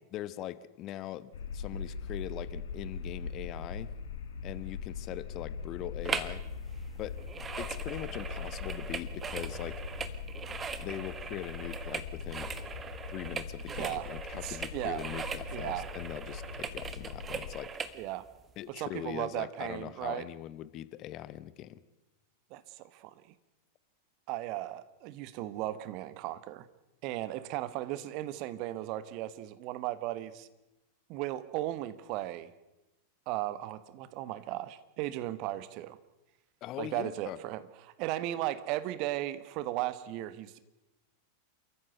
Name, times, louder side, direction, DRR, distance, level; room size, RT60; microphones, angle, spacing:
voice 1, 0.1-3.9 4.4-6.4 7.0-7.2 7.6-9.8 10.8-12.5 13.1-17.7 18.6-21.8 36.6-37.4, left 13 dB, 35° left, 16 dB, 1.0 m, -41 dB
sound 1, 1.3-17.5, left 5 dB, 60° left, 2.0 m, -41 dB
sound 2, 6.0-6.4 6.7-18.0 18.5-18.6, right 6 dB, 20° right, 1.5 m, -40 dB
voice 2, 14.4-15.0 15.5-15.8 17.9-18.3 18.7-20.3 22.5-23.1 24.3-26.6 27.0-30.5 31.1-32.5 33.3-36.0 36.8-40.6, right 15 dB, 40° right, 14 dB, 1.3 m, -36 dB
28.5 x 14.5 x 8.0 m, 1.0 s
figure-of-eight pair, 90°, 0 cm